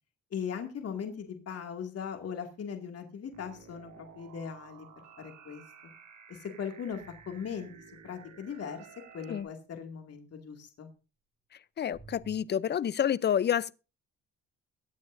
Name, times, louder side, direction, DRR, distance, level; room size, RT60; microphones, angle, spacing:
voice 1, 0.3-4.9 5.2-5.6 6.3-7.7 8.0-8.9 9.1-10.9, left 7 dB, 55° left, 2.3 m, -39 dB
sound 1, 3.3-9.4, right 7 dB, 70° right, 3.1 m, -53 dB
voice 2, 11.8-13.8, left 9 dB, 35° left, 0.5 m, -28 dB
sound 2, 11.9-12.4, right 4 dB, 40° right, 7.0 m, -50 dB
22.5 x 8.6 x 2.6 m
cardioid pair, 90°, 30 cm